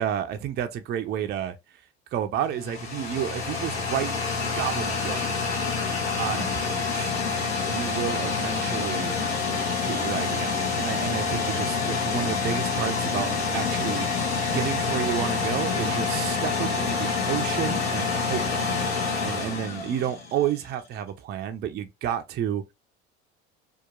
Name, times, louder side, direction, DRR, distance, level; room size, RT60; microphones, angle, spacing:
voice 1, 0.0-1.6 2.1-4.1 4.6-5.4 6.2-7.1 7.7-9.2 9.9-22.6, right 10 dB, 30° right, 0.4 m, -31 dB
sound 1, 2.4-20.5, left 4 dB, 75° left, 1.1 m, -27 dB
2.8 x 2.2 x 2.4 m
hypercardioid pair, 65°, 33 cm